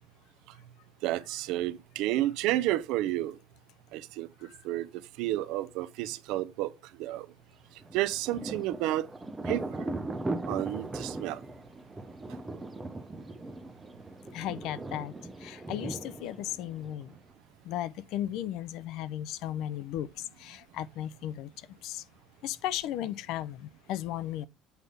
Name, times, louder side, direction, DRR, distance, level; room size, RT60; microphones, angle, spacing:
voice 1, 1.0-3.4 3.9-4.3 4.6-4.9 5.2-6.7 7.0-7.3 7.9-9.1 9.5-9.9 10.5-11.4, right 15 dB, 75° right, 0.6 m, -31 dB
Thunder, 7.8-17.3, right 2 dB, 10° right, 0.6 m, -39 dB
voice 2, 14.3-15.1 15.4-17.1 17.6-21.5 21.8-22.0 22.4-24.5, left 12 dB, 65° left, 0.5 m, -35 dB
8.1 x 3.4 x 5.3 m
cardioid pair, 160°, 0 cm